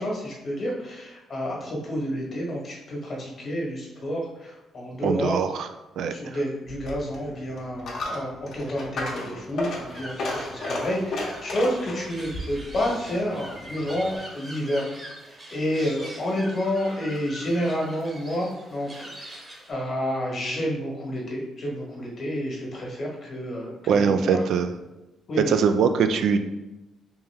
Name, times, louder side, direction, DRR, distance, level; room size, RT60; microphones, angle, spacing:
voice 1, 0.0-5.4 6.1-14.8 15.5-24.4 25.3-25.5, equal, 45° left, -2 dB, 1.3 m, -29 dB
voice 2, 5.0-5.7 6.0-6.1 23.9-24.7 25.5-26.4, right 6 dB, 70° right, 8 dB, 0.3 m, -22 dB
Coin (dropping), 6.7-14.2, left 2 dB, 65° left, 1.0 m, -34 dB
sound 1, 9.6-19.7, right 1 dB, 30° right, 1.0 m, -43 dB
3.5 x 2.9 x 3.3 m, 1.0 s
cardioid pair, 90°, 0 cm